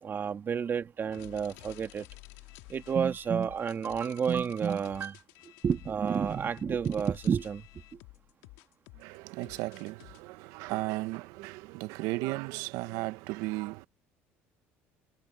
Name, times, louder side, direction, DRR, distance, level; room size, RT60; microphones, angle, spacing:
voice 1, 0.0-2.1 2.7-5.2 5.6-7.6, right 7 dB, 40° right, 1.9 m, -30 dB
sound 1, 1.1-10.2, left 21 dB, 80° left, 1.8 m, -52 dB
voice 2, 9.0-13.9, right 20 dB, 75° right, 1.0 m, -35 dB
supercardioid pair, 85°, 6 cm